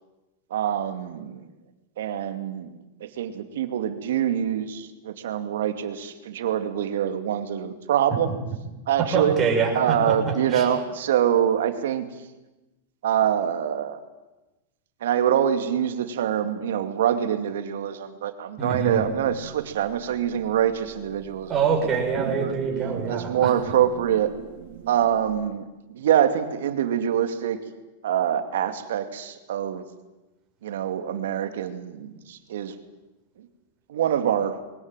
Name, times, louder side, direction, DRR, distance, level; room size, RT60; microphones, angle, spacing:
voice 1, 0.5-1.5 2.0-8.3 8.9-9.4 9.7-12.1 13.0-14.0 15.0-21.6 22.4-22.5 23.1-24.3 24.9-25.6 25.9-27.6 28.0-29.8 30.6-32.7 33.4-33.5 33.9-34.6, right 10 dB, 75° right, 8 dB, 2.6 m, -25 dB
voice 2, 9.0-10.1 10.5-10.6 18.6-19.1 21.5-23.5, right 5 dB, 20° right, 0 dB, 6.3 m, -25 dB
sound 1, 18.6-25.5, right 11 dB, 55° right, 2.1 m, -40 dB
22.0 x 19.0 x 9.2 m, 1.1 s
supercardioid pair, 155°, 0 cm